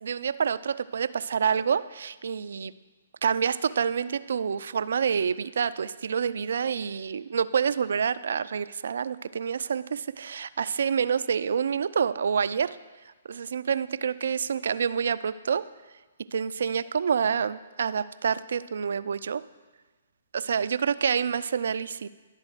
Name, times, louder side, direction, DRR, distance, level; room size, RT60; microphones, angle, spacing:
voice 1, 0.0-2.7 3.2-12.8 13.3-15.6 16.3-19.4 20.3-22.1, right 7 dB, 65° right, 15 dB, 0.3 m, -27 dB
11.5 x 4.1 x 6.5 m, 1.2 s
figure-of-eight pair, 130°, 0 cm